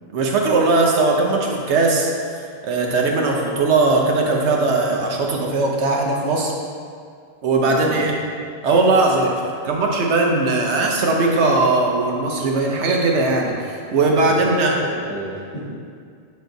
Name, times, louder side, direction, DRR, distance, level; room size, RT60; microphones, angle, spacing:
voice 1, 0.1-2.1 2.6-6.5 7.4-8.1 8.6-14.7, right 3 dB, 85° right, 0 dB, 1.1 m, -19 dB
voice 2, 7.6-8.2 14.2-15.7, equal, 30° left, -11 dB, 1.4 m, -29 dB
8.7 x 3.1 x 3.9 m, 2.2 s
omnidirectional pair, 1.1 m